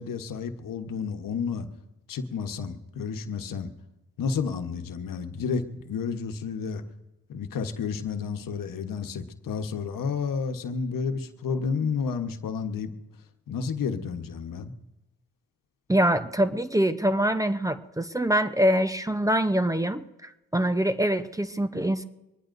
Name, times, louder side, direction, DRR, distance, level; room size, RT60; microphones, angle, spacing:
voice 1, 0.0-1.7 2.1-3.7 4.2-6.8 7.3-12.9 13.5-14.7, left 5 dB, 65° left, 7 dB, 1.2 m, -31 dB
voice 2, 15.9-22.0, right 1 dB, 10° right, 10 dB, 0.8 m, -24 dB
24.0 x 20.0 x 2.6 m, 1.0 s
supercardioid pair, 60°, 35 cm